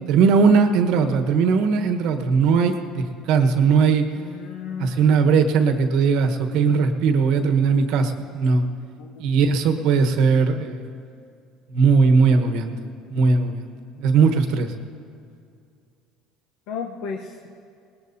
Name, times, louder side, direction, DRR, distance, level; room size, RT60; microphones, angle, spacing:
voice 1, 0.1-4.1 4.8-8.6 9.2-10.9 11.7-12.8 13.1-13.7 14.0-14.7, right 5 dB, 75° right, 6 dB, 1.2 m, -19 dB
voice 2, 4.2-5.3 9.0-9.2 16.7-17.5, left 6 dB, 75° left, 3 dB, 0.9 m, -34 dB
20.0 x 20.0 x 2.8 m, 2.3 s
supercardioid pair, 95°, 0 cm